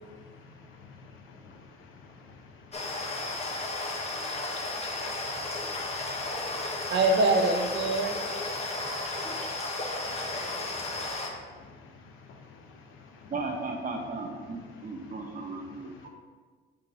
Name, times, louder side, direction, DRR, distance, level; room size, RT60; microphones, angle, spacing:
voice 1, 0.0-6.9 8.3-13.3 14.4-16.1, left 4 dB, 85° left, 3 dB, 1.0 m, -52 dB
sound 1, 2.7-11.3, left 2 dB, 30° left, 1.1 m, -34 dB
voice 2, 6.9-8.2 8.7-9.3, right 2 dB, 65° right, 4 dB, 0.9 m, -25 dB
voice 3, 13.3-16.1, right 3 dB, 45° right, 2 dB, 1.2 m, -36 dB
5.8 x 3.8 x 5.4 m, 1.5 s
cardioid pair, 90°, 20 cm